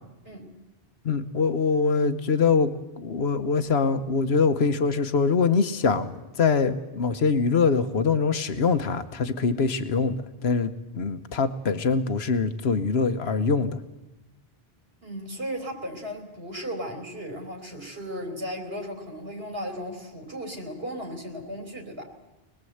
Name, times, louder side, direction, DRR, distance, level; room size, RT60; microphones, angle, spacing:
voice 1, 0.2-0.6 15.0-22.1, equal, 75° right, 3 dB, 3.5 m, -36 dB
voice 2, 1.0-2.7 3.0-13.8, left 5 dB, 85° left, 9 dB, 1.3 m, -24 dB
26.0 x 20.0 x 7.9 m, 1.0 s
omnidirectional pair, 1.0 m